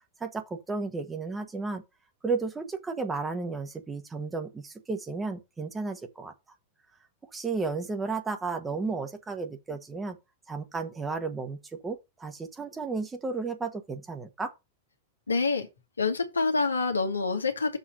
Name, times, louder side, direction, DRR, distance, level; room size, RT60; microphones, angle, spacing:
voice 1, 0.2-1.8 2.2-6.3 7.3-10.2 10.5-14.5, right 4 dB, 15° right, 1.4 m, -33 dB
voice 2, 15.3-15.7 16.0-17.8, left 4 dB, 75° left, 1.5 m, -26 dB
6.6 x 4.3 x 6.4 m
figure-of-eight pair, 90°, 0 cm